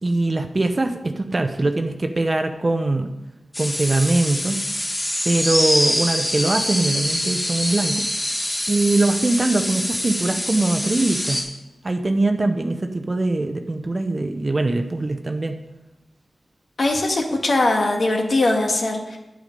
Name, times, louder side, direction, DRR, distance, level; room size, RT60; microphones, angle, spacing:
voice 1, 0.0-3.1 3.6-4.6 5.3-8.1 8.7-11.4 11.8-15.6, right 2 dB, 35° right, 6 dB, 0.6 m, -22 dB
sound 1, 3.5-11.4, left 1 dB, 25° left, 2.3 m, -25 dB
voice 2, 16.8-19.2, left 2 dB, 60° left, 2 dB, 1.6 m, -20 dB
8.9 x 8.1 x 5.3 m, 1.0 s
wide cardioid pair, 75°, 0 cm